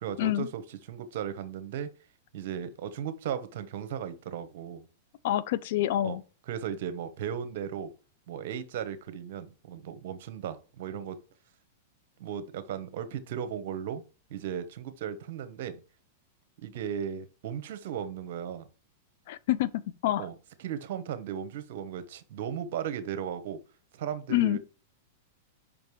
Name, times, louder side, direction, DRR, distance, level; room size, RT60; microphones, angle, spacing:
voice 1, 0.0-0.6 0.9-1.9 2.3-4.8 6.0-6.2 6.5-7.9 8.3-11.2 12.2-14.0 14.3-15.8 16.6-18.7 20.2-23.6 23.9-24.6, right 8 dB, 65° right, 1.1 m, -36 dB
voice 2, 5.2-6.2 19.3-20.3 24.3-24.6, left 13 dB, 65° left, 0.5 m, -27 dB
5.5 x 5.2 x 4.8 m
hypercardioid pair, 120°, 0 cm